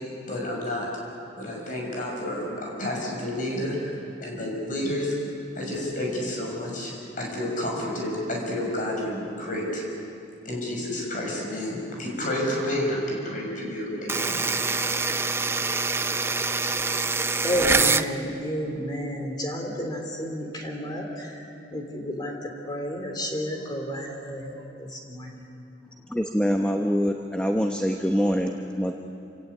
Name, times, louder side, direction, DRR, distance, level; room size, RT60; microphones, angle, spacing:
voice 1, 0.3-0.9 1.3-5.1 5.5-9.8 10.4-14.4, left 1 dB, 45° left, -1 dB, 6.7 m, -30 dB
sound 1, 14.1-18.1, right 4 dB, 15° right, 0.5 m, -25 dB
voice 2, 17.4-21.3 21.7-22.3 22.7-24.6 25.1-25.3, equal, 25° left, 2 dB, 3.2 m, -30 dB
voice 3, 26.1-28.9, equal, 5° left, 3 dB, 0.9 m, -24 dB
27.5 x 18.0 x 8.5 m, 2.6 s
head